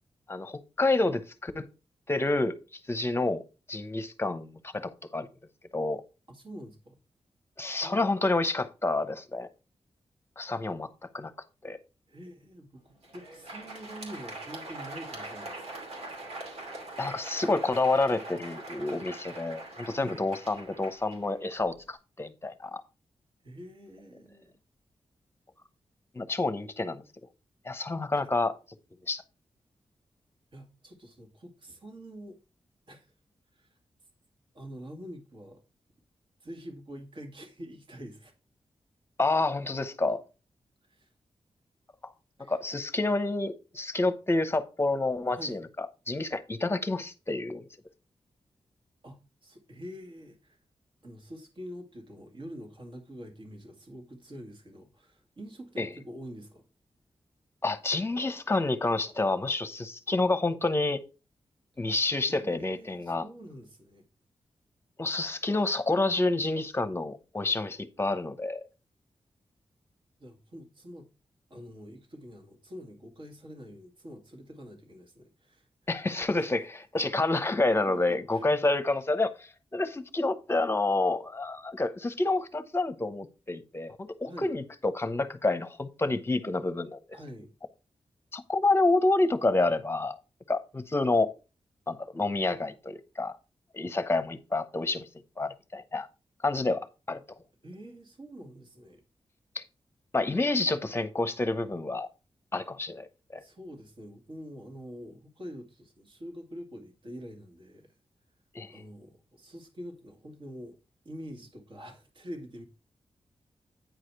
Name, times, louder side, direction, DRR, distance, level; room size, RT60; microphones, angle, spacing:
voice 1, 0.3-1.7 2.1-2.6 2.9-3.4 3.7-5.3 5.7-6.0 7.6-9.5 10.4-10.9 11.1-11.3 11.6-11.8 17.0-22.8 26.1-27.0 27.6-28.6 29.1-29.2 39.2-40.2 42.0-42.1 42.5-47.7 55.8-55.9 57.6-61.0 61.8-63.2 65.0-68.6 75.9-87.0 88.3-90.2 90.5-91.3 91.9-93.3 93.7-95.1 95.4-96.1 96.4-97.2 99.5-99.6 100.1-102.1 102.5-103.1 103.3-103.4 108.5-108.7, left 2 dB, 25° left, 0.9 m, -28 dB
voice 2, 6.3-7.0 7.8-8.2 12.1-16.1 20.0-20.2 23.4-24.6 28.1-28.3 30.5-32.4 32.9-33.1 33.5-33.8 34.5-35.6 36.4-38.3 40.8-41.1 42.4-42.8 45.3-45.6 49.0-50.6 51.0-56.6 61.7-64.0 70.2-71.1 71.5-75.7 76.4-76.5 77.9-78.5 84.2-84.5 87.1-87.5 97.6-99.0 103.4-108.0 108.7-110.8 111.0-112.6, equal, 50° right, 2.2 m, -46 dB
Crowd, 12.9-21.9, right 2 dB, 80° right, 2.5 m, -43 dB
9.2 x 4.9 x 4.6 m
wide cardioid pair, 115°, 10 cm